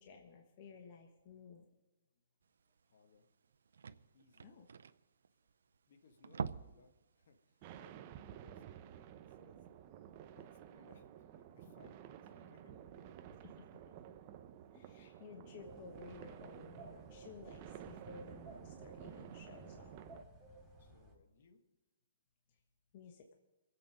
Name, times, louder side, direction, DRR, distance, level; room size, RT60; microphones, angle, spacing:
voice 1, 0.0-1.6 4.4-4.7 13.9-14.1 14.7-19.9 22.9-23.4, left 4 dB, 40° left, 3 dB, 1.3 m, -55 dB
voice 2, 2.8-3.3 4.1-4.6 5.9-9.7 10.3-13.5 20.5-21.6, left 4 dB, 55° left, 6 dB, 1.6 m, -67 dB
sound 1, 2.8-2.9 3.1-3.2 3.4-5.7 6.1-6.9 7.2-7.4 7.8-7.9, right 6 dB, 80° right, 0.6 m, -44 dB
sound 2, 7.6-20.2, right 10 dB, 30° right, 0.7 m, -53 dB
sound 3, 15.6-21.1, right 1 dB, 5° left, 2.5 m, -58 dB
23.0 x 8.2 x 5.0 m, 1.1 s
hypercardioid pair, 165°, 0 cm